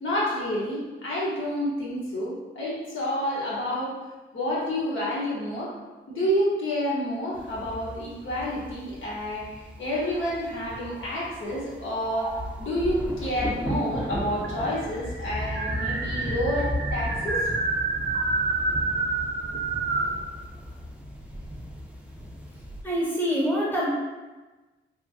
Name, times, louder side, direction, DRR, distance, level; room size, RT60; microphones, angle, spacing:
voice 1, 0.0-3.9 4.3-5.7 6.1-12.3 12.6-17.5, equal, 80° left, -7 dB, 0.9 m, -29 dB
sound 1, 7.3-22.8, equal, 5° right, 0.4 m, -36 dB
sound 2, 10.0-11.5 12.0-12.7 13.7-13.8 14.0-14.1 14.4-20.2, right 3 dB, 60° right, 0.5 m, -29 dB
voice 2, 22.8-23.9, equal, 10° left, -7 dB, 1.2 m, -25 dB
2.9 x 2.4 x 2.4 m, 1.2 s
cardioid pair, 65°, 20 cm